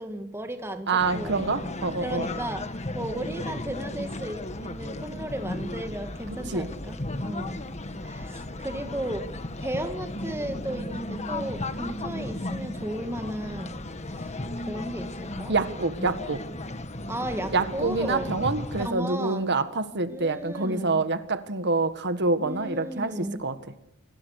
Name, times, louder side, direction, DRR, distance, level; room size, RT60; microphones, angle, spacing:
voice 1, 0.0-1.4 2.0-2.6 2.9-7.6 8.0-9.3 9.6-13.8 14.2-14.3 14.6-15.5 17.1-18.3 18.8-19.5 20.1-21.0 22.4-23.4, right 1 dB, 10° right, 6 dB, 2.0 m, -35 dB
voice 2, 0.9-2.3 6.5-6.7 15.5-16.4 17.5-23.6, right 3 dB, 55° right, 10 dB, 1.8 m, -26 dB
sound 1, 1.0-18.9, left 2 dB, 30° left, 1.5 m, -35 dB
28.5 x 22.0 x 6.7 m, 0.77 s
head